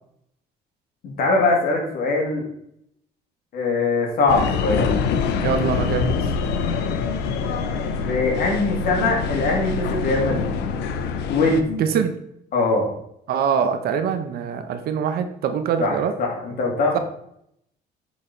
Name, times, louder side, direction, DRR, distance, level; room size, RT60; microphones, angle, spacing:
voice 1, 1.2-2.4 3.5-4.9 8.0-10.6 11.3-11.8 12.5-12.9 15.8-15.9 16.2-17.0, left 3 dB, 60° left, -1 dB, 2.3 m, -21 dB
sound 1, 4.3-11.6, left 5 dB, 85° left, 0.7 m, -25 dB
voice 2, 5.4-6.1 11.8-12.1 13.3-16.1 16.9-17.0, right 7 dB, 65° right, 8 dB, 0.8 m, -23 dB
7.3 x 4.2 x 4.4 m, 0.73 s
cardioid pair, 110°, 17 cm